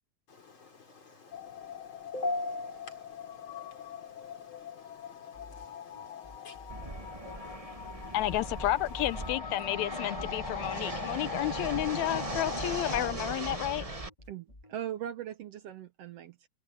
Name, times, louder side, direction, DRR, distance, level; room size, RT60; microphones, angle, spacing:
voice 1, 0.3-9.3, left 2 dB, 45° left, 4.7 m, -43 dB
sound 1, 1.3-13.1, left 9 dB, 60° left, 1.6 m, -42 dB
sound 2, 5.3-14.7, left 1 dB, 15° left, 2.4 m, -53 dB
Fixed-wing aircraft airplane, 6.7-14.1, right 3 dB, 30° right, 0.6 m, -39 dB
voice 2, 8.1-14.0, left 15 dB, 85° left, 1.9 m, -31 dB
voice 3, 14.3-16.5, right 11 dB, 70° right, 1.7 m, -40 dB
omnidirectional pair, 3.3 m